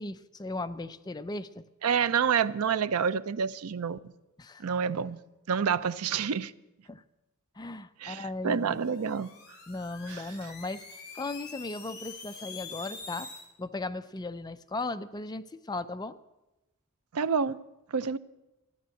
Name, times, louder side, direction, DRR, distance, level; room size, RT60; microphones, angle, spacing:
voice 1, 0.0-1.6 4.4-4.6 6.9-7.0 7.6-8.8 9.7-10.8 11.1-13.3 13.6-16.2, left 2 dB, 20° left, 0.5 m, -37 dB
voice 2, 1.8-4.0 4.6-5.2 5.5-6.5 8.0-9.3 10.1-10.2 17.1-17.6 17.9-18.2, right 6 dB, 85° right, 0.5 m, -28 dB
sound 1, 8.6-13.5, left 4 dB, 50° left, 3.1 m, -45 dB
14.0 x 10.0 x 7.7 m
head